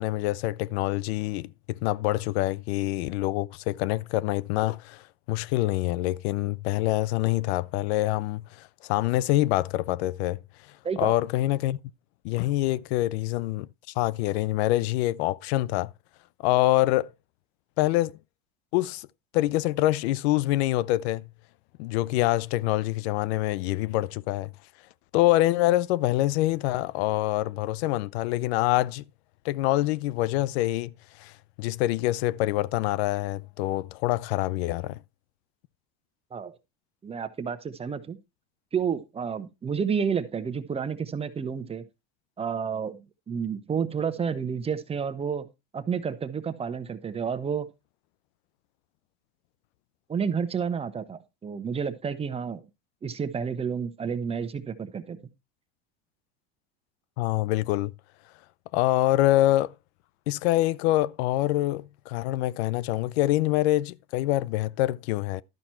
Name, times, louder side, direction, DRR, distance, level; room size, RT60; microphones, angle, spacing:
voice 1, 0.0-5.0 5.3-10.4 11.0-11.8 12.2-13.7 14.0-15.9 16.4-17.1 17.8-18.2 18.7-19.1 19.3-21.2 21.8-24.5 25.1-29.0 29.4-30.9 31.2-31.3 31.6-35.0 57.2-57.9 58.7-59.7 60.3-65.4, left 16 dB, 80° left, 0.5 m, -25 dB
voice 2, 37.0-38.2 38.7-41.8 42.4-43.0 43.3-45.5 45.7-47.7 50.1-52.6 53.0-55.2, right 6 dB, 20° right, 0.9 m, -30 dB
12.0 x 5.9 x 4.3 m
supercardioid pair, 130°, 31 cm